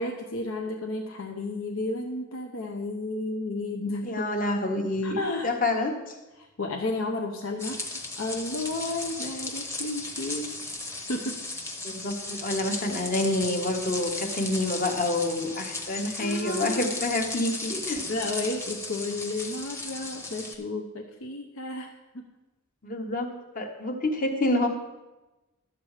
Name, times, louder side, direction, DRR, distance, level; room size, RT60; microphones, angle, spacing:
voice 1, 0.0-4.1 5.0-5.5 6.4-7.8 8.2-10.8 11.1-11.5 16.2-16.8 18.1-22.3, left 2 dB, 75° left, 3 dB, 0.8 m, -32 dB
voice 2, 4.0-5.2 5.4-6.1 11.8-18.1 22.8-23.3 23.5-24.7, left 2 dB, 40° left, 4 dB, 1.2 m, -28 dB
sound 1, 7.6-20.5, left 2 dB, 15° left, 1.0 m, -36 dB
12.0 x 7.4 x 4.9 m, 1.1 s
head